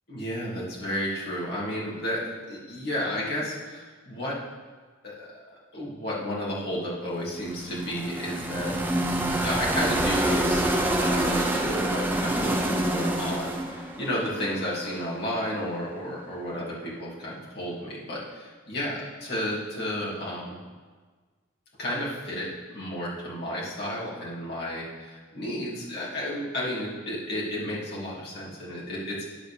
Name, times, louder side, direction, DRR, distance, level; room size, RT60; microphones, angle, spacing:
voice 1, 0.1-4.4 5.0-9.1 9.4-20.6 21.8-29.2, equal, 55° left, -7 dB, 2.5 m, -32 dB
sound 1, 7.2-15.2, right 1 dB, 10° right, 0.7 m, -27 dB
9.9 x 4.1 x 6.9 m, 1.4 s
head